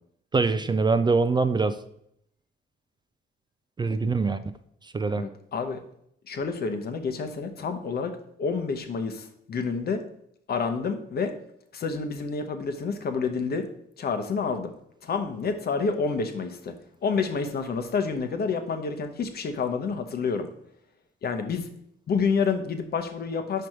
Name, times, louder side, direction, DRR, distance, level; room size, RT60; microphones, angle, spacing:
voice 1, 0.3-1.8 3.8-4.4 4.8-5.3, right 4 dB, 20° right, 11 dB, 0.4 m, -23 dB
voice 2, 5.1-5.8 6.3-8.1 8.4-10.0 10.5-11.3 11.7-13.7 14.0-14.7 15.0-16.7 17.0-20.5 21.2-21.7 22.1-23.7, left 5 dB, 50° left, 8 dB, 0.9 m, -28 dB
5.2 x 4.6 x 4.8 m, 0.71 s
cardioid pair, 90°, 20 cm